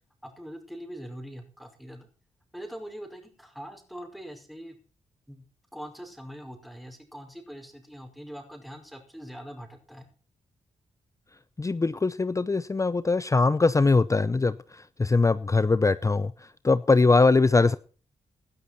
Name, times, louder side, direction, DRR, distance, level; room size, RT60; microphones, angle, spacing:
voice 1, 0.2-2.1 2.5-4.8 5.3-5.4 5.7-10.1, equal, ahead, 5.1 m, -42 dB
voice 2, 11.6-17.8, left 3 dB, 25° left, 0.7 m, -22 dB
19.0 x 12.0 x 4.2 m
cardioid pair, 75°, 12 cm